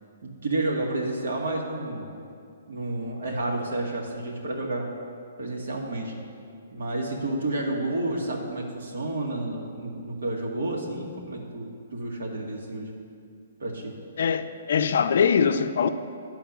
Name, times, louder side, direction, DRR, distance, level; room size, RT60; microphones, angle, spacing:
voice 1, 0.2-2.1 2.7-4.9 5.4-6.2 6.7-12.9 13.6-14.0, right 2 dB, 85° right, 1.8 m, -30 dB
voice 2, 14.2-15.9, left 6 dB, 60° left, 0.5 m, -22 dB
10.5 x 4.5 x 7.0 m
hypercardioid pair, 165°, 0 cm